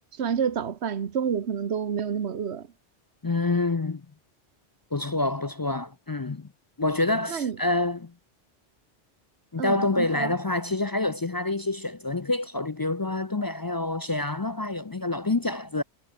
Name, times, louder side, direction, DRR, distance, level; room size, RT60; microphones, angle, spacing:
voice 1, 0.1-2.7 7.3-7.6 9.6-10.3, right 7 dB, 70° right, 1.4 m, -29 dB
voice 2, 3.2-4.0 4.9-6.5 6.8-8.1 9.5-15.8, left 2 dB, 35° left, 0.4 m, -27 dB
omnidirectional pair, 1.1 m